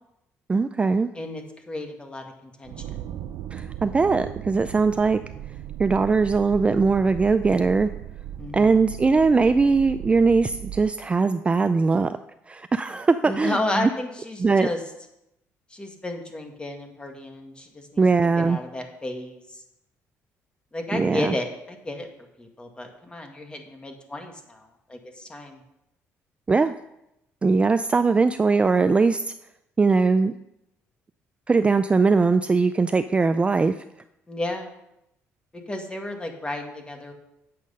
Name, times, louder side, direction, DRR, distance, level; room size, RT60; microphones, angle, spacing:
voice 1, 0.5-1.1 3.5-5.2 5.8-7.9 8.5-12.2 12.5-13.9 14.4-14.7 18.0-18.6 20.9-21.4 26.5-26.7 27.4-29.2 29.8-30.3 31.5-33.7, right 4 dB, 20° right, 10 dB, 0.3 m, -20 dB
voice 2, 1.2-2.9 8.4-8.7 12.9-13.0 13.3-14.8 15.7-19.6 20.7-22.1 22.4-25.6 34.3-34.7 35.7-37.1, left 2 dB, 20° left, 4 dB, 1.7 m, -33 dB
sound 1, 2.6-10.9, right 11 dB, 80° right, 0.5 m, -37 dB
8.6 x 7.3 x 5.5 m, 0.85 s
cardioid pair, 100°, 5 cm